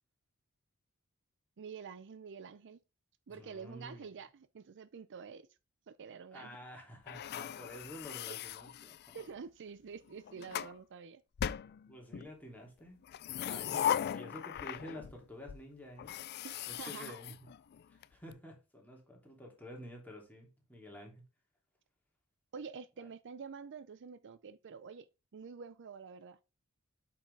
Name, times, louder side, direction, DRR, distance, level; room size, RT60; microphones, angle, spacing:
voice 1, 1.6-2.8 3.3-5.5 5.9-6.6 9.1-11.2 16.4-17.1 22.5-26.4, right 6 dB, 55° right, 0.5 m, -48 dB
voice 2, 3.3-4.1 6.3-9.1 11.9-13.0 13.5-13.8 14.1-16.2 16.7-17.5 17.9-21.2 23.0-23.1, equal, 5° left, 2.9 m, -50 dB
sound 1, 7.1-9.3 10.1-10.8 11.4-12.3 13.0-15.2 15.5-15.6 16.0-18.0, left 9 dB, 45° left, 0.3 m, -38 dB
8.4 x 5.8 x 3.4 m
head